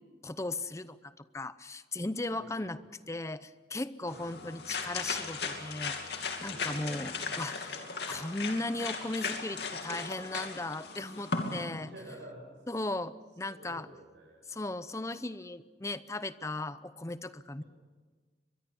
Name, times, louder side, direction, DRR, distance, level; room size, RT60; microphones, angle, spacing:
voice 1, 0.2-2.8 3.1-11.9 12.7-13.9 14.5-17.6, left 2 dB, 15° left, 14 dB, 0.7 m, -37 dB
voice 2, 2.4-2.8 4.1-4.4 6.5-7.0 11.8-12.6 13.5-14.6 17.6-17.7, right 1 dB, 90° right, 0 dB, 6.1 m, -50 dB
sound 1, 4.1-11.6, left 4 dB, 65° left, 2.7 m, -37 dB
24.0 x 22.5 x 7.0 m, 1.4 s
head